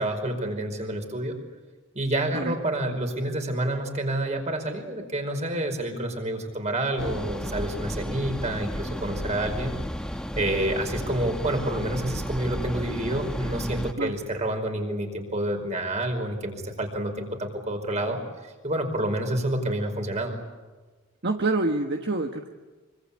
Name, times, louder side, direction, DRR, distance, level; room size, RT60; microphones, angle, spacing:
voice 1, 0.0-1.3 1.9-9.7 10.4-18.2 18.6-20.4, right 1 dB, 35° right, 5 dB, 5.0 m, -28 dB
sound 1, 7.0-13.9, equal, 5° left, 1.1 m, -33 dB
voice 2, 21.2-22.5, right 2 dB, 55° right, 4 dB, 1.4 m, -26 dB
25.5 x 24.5 x 8.6 m, 1.3 s
head